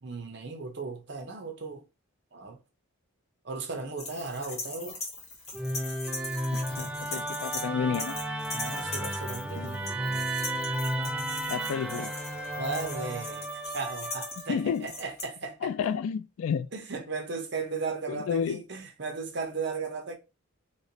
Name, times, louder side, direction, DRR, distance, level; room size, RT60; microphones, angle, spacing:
voice 1, 0.0-1.8 2.3-2.6 3.4-5.0 8.5-9.9 12.6-13.5 13.7-15.7 16.7-20.1, right 4 dB, 55° right, 0.7 m, -36 dB
sound 1, 4.0-7.7 7.9-15.2, left 3 dB, 30° left, 1.1 m, -40 dB
Musical instrument, 5.5-14.8, right 1 dB, 5° right, 0.3 m, -33 dB
voice 2, 6.5-8.2 9.6-9.7 11.5-12.1 14.5-14.9 15.6-16.7 18.1-18.6, left 7 dB, 80° left, 0.3 m, -31 dB
3.1 x 2.8 x 2.7 m
head